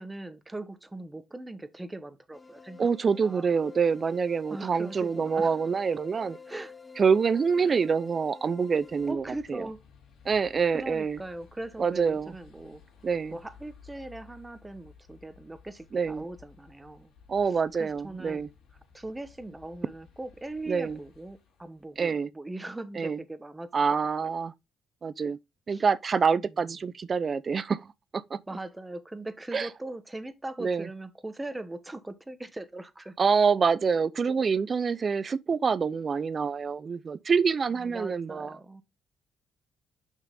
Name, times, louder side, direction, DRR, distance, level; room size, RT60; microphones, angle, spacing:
voice 1, 0.0-2.9 3.2-3.5 4.5-5.6 6.5-6.7 7.6-7.8 9.1-9.8 10.7-12.8 13.3-17.1 17.4-18.5 18.9-24.3 25.7-25.9 26.4-26.6 28.5-33.2 37.7-38.8, right 2 dB, 15° right, 1.1 m, -40 dB
sound 1, 2.3-9.1, left 5 dB, 20° left, 0.7 m, -49 dB
voice 2, 2.8-6.4 7.0-9.6 10.2-11.2 11.8-12.3 13.0-13.4 15.9-16.2 17.3-18.5 20.7-21.0 22.0-22.3 23.0-23.2 23.7-24.5 25.0-25.4 25.7-28.4 29.5-29.7 30.6-30.9 33.2-38.5, right 5 dB, 40° right, 0.6 m, -26 dB
sound 2, 8.6-22.1, left 6 dB, 75° left, 3.1 m, -56 dB
5.9 x 5.6 x 3.7 m
cardioid pair, 90°, 0 cm